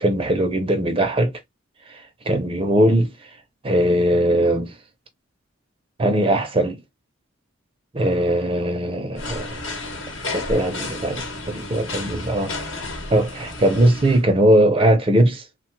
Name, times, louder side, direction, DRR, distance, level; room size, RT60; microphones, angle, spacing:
voice 1, 0.0-1.3 2.3-3.1 3.6-4.7 6.0-6.8 7.9-9.6 10.3-12.5 13.1-15.4, right 1 dB, 25° right, 0.4 m, -19 dB
sound 1, 9.2-14.2, left 2 dB, 75° left, 1.0 m, -32 dB
3.0 x 2.1 x 3.0 m
head